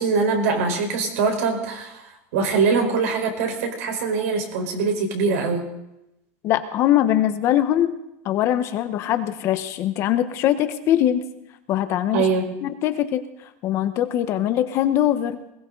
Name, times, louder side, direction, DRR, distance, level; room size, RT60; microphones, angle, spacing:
voice 1, 0.0-2.0 2.3-5.6 12.1-12.4, right 4 dB, 80° right, 3 dB, 4.6 m, -22 dB
voice 2, 6.4-8.0 8.2-11.3 11.7-12.3 12.6-13.2 13.6-15.4, left 12 dB, 35° left, 9 dB, 1.2 m, -22 dB
21.0 x 17.5 x 4.0 m, 0.86 s
supercardioid pair, 165°, 8 cm